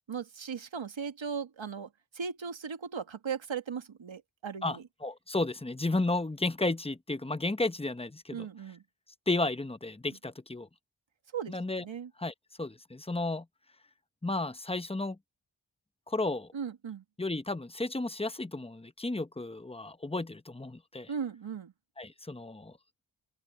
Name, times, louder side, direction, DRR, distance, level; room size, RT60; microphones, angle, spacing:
voice 1, 0.1-4.8 8.3-8.8 11.3-12.1 16.5-17.0 21.1-21.7, right 6 dB, 75° right, 1.6 m, -38 dB
voice 2, 4.6-8.5 9.3-10.7 11.5-11.8 12.2-13.5 14.2-15.2 16.1-16.5 17.2-21.1 22.0-22.8, left 2 dB, 10° left, 0.8 m, -33 dB
open air
wide cardioid pair, 80°, 46 cm